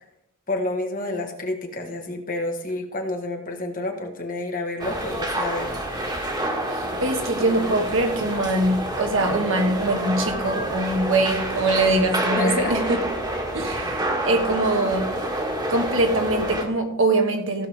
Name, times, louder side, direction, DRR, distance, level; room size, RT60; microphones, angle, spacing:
voice 1, 0.5-5.7 12.4-12.8, left 2 dB, 40° left, 3 dB, 1.6 m, -29 dB
sound 1, 4.8-16.6, right 1 dB, 20° right, 1.8 m, -28 dB
voice 2, 6.7-13.0 13.5-15.1 15.7-17.7, right 2 dB, 65° right, 4 dB, 1.7 m, -23 dB
16.0 x 6.9 x 3.5 m, 0.84 s
head